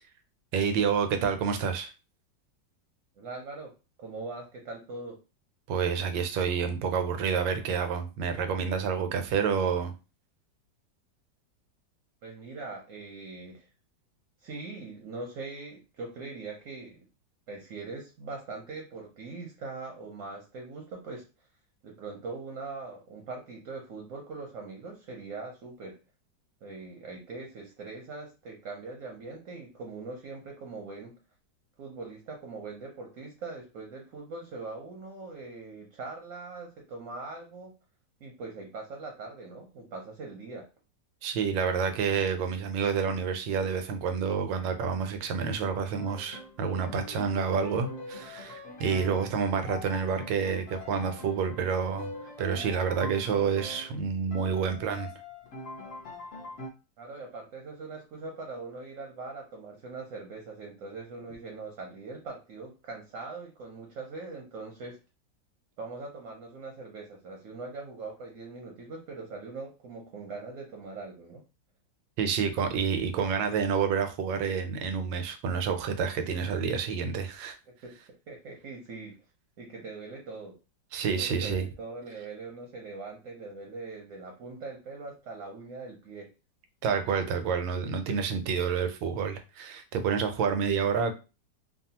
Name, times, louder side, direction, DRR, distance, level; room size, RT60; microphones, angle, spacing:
voice 1, 0.5-1.9 5.7-9.9 41.2-52.1 52.4-55.1 72.2-77.6 80.9-81.7 86.8-91.2, right 6 dB, 90° right, 1.3 m, -29 dB
voice 2, 3.2-3.7 4.0-5.2 12.2-13.7 14.4-17.0 17.5-21.3 21.8-26.0 26.6-31.2 31.8-37.7 38.2-40.7 57.0-65.0 65.8-71.4 77.8-79.2 79.6-80.5 81.1-86.3, right 3 dB, 65° right, 0.8 m, -41 dB
Piano, 45.9-54.0 54.3-56.7, left 2 dB, 60° left, 0.6 m, -43 dB
2.9 x 2.3 x 2.8 m
omnidirectional pair, 2.0 m